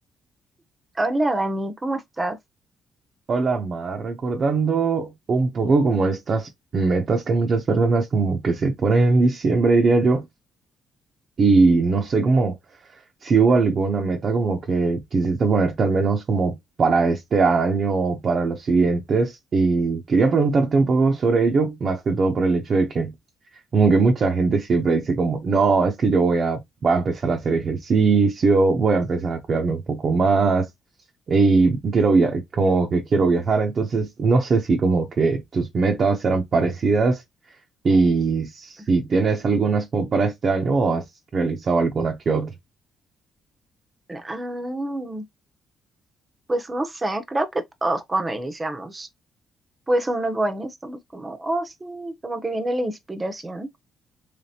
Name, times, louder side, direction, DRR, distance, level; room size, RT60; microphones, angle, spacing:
voice 1, 0.9-2.4 25.5-25.6 44.1-45.2 46.5-49.1 49.9-53.7, right 1 dB, 20° right, 0.8 m, -27 dB
voice 2, 3.3-10.2 11.4-12.6 13.2-23.1 23.7-30.7 31.3-37.2 37.8-41.0 41.3-42.5, right 4 dB, 50° right, 0.7 m, -20 dB
3.4 x 3.3 x 2.8 m
cardioid pair, 90°, 0 cm